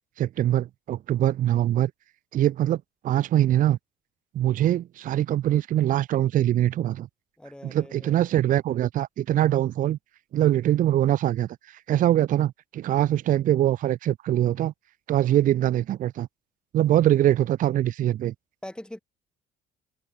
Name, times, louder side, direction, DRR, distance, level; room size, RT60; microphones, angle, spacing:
voice 1, 0.2-1.9 2.3-3.8 4.3-7.1 7.6-10.0 10.3-14.7 15.1-16.3 16.7-18.3, right 12 dB, 55° right, 0.5 m, -23 dB
voice 2, 7.4-8.2 18.6-19.0, left 1 dB, 5° left, 2.3 m, -41 dB
cardioid pair, 110°, 17 cm